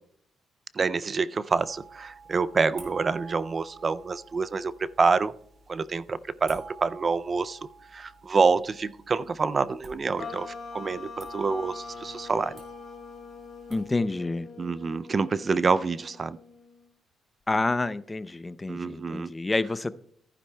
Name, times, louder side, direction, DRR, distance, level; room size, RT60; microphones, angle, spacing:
voice 1, 0.7-5.3 5.7-7.6 7.9-12.6 14.6-16.4 18.7-19.3, right 4 dB, 35° right, 16 dB, 0.3 m, -27 dB
MR Glass and Fingers, 1.5-14.0, right 4 dB, 50° right, 2.7 m, -50 dB
sound 1, 10.2-16.9, left 4 dB, 40° left, 4.0 m, -43 dB
voice 2, 13.7-14.5 17.5-19.9, left 2 dB, 20° left, 16 dB, 0.5 m, -28 dB
14.5 x 9.8 x 2.2 m, 0.66 s
cardioid pair, 90°, 0 cm